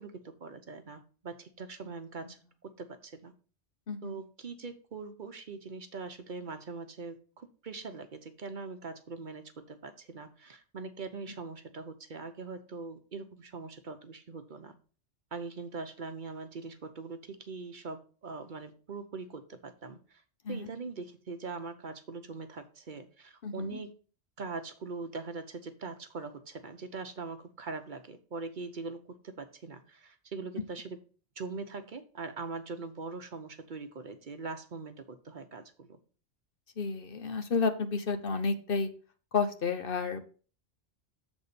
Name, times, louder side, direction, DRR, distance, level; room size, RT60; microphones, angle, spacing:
voice 1, 0.0-2.4 2.8-3.3 4.0-14.7 15.3-20.2 20.5-23.9 24.4-31.0 31.4-36.0, right 4 dB, 50° right, 8 dB, 0.9 m, -42 dB
voice 2, 3.9-4.2 20.4-20.7 23.4-23.8 36.8-38.9 39.3-40.3, left 4 dB, 60° left, 8 dB, 1.0 m, -31 dB
7.1 x 4.2 x 6.7 m, 0.39 s
omnidirectional pair, 1.1 m